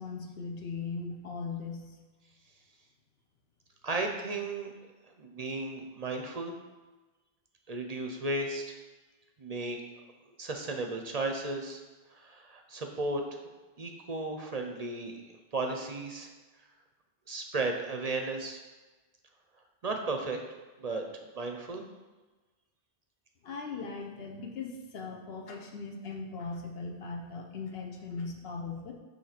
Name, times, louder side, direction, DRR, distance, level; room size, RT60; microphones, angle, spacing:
voice 1, 0.0-1.9 23.4-28.9, left 4 dB, 65° left, 2 dB, 1.0 m, -39 dB
voice 2, 3.8-4.7 5.2-6.5 7.7-8.7 9.4-9.8 10.4-11.8 12.1-13.4 13.8-15.2 15.5-16.3 17.3-18.6 19.8-20.4 20.8-21.0 21.4-21.8, right 2 dB, 45° right, 3 dB, 0.6 m, -34 dB
6.9 x 2.9 x 5.8 m, 1.2 s
omnidirectional pair, 1.1 m